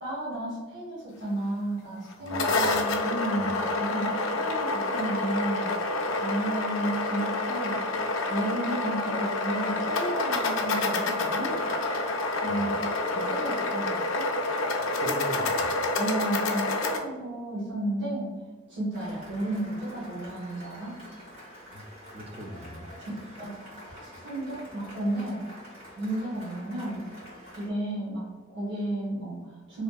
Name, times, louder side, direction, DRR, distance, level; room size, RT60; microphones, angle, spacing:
voice 1, 0.0-5.7 6.2-7.8 8.3-11.5 12.4-12.8 13.1-14.3 15.9-18.4 18.7-21.0 23.0-23.1 23.4-25.5 26.0-27.1 27.5-29.8, right 1 dB, 60° right, -8 dB, 0.9 m, -33 dB
sound 1, 2.1-17.0, left 2 dB, 80° left, 0.4 m, -28 dB
voice 2, 2.2-2.8 3.4-3.5 12.5-12.7 15.0-15.7 21.7-21.8 22.1-22.9, right 1 dB, 30° right, 3 dB, 0.3 m, -39 dB
Cheering / Applause, 18.9-27.7, equal, 85° right, 1.5 m, -47 dB
2.7 x 2.3 x 2.3 m, 1.3 s
head